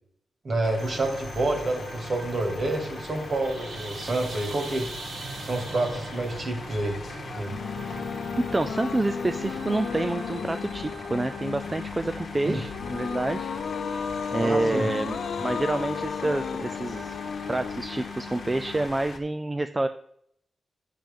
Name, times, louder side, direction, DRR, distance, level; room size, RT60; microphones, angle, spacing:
voice 1, 0.4-4.9 5.4-7.0 7.3-7.5 12.5-12.6 14.4-14.9, right 2 dB, 45° right, 2 dB, 2.2 m, -28 dB
sound 1, 0.6-19.2, left 3 dB, 45° left, 1.2 m, -41 dB
sound 2, 0.8-18.9, right 3 dB, 85° right, 2.1 m, -43 dB
sound 3, 7.5-18.8, left 6 dB, 75° left, 0.6 m, -34 dB
voice 2, 8.4-13.5 14.3-17.1 17.5-19.9, right 2 dB, 15° right, 8 dB, 0.4 m, -28 dB
10.5 x 7.4 x 3.6 m, 0.68 s
wide cardioid pair, 165°, 0 cm